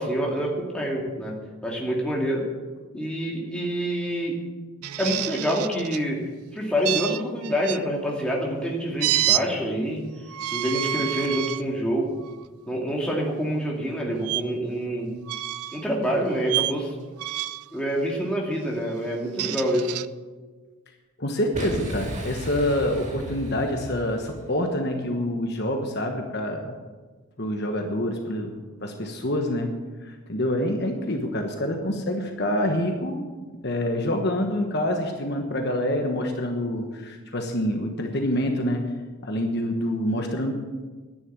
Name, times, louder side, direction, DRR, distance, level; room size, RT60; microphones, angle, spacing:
voice 1, 0.0-1.3 1.6-2.4 2.9-4.3 5.0-6.2 6.5-10.0 10.5-12.1 12.7-15.1 15.7-17.0 17.7-20.0, equal, 5° left, -3 dB, 2.5 m, -26 dB
sound 1, 4.8-6.0 6.8-7.8 9.0-9.4 10.3-11.6 12.2-12.4 14.2-14.4 15.3-15.8 16.5-16.8 17.2-17.7 19.1-20.1, right 14 dB, 85° right, 0.4 m, -28 dB
voice 2, 21.2-26.7 27.4-28.5 28.8-29.7 30.0-33.2 33.6-38.8 39.2-40.5, left 1 dB, 50° left, 3 dB, 1.3 m, -26 dB
Boom, 21.5-24.5, right 1 dB, 30° right, 2.1 m, -35 dB
11.0 x 10.0 x 8.8 m, 1.4 s
head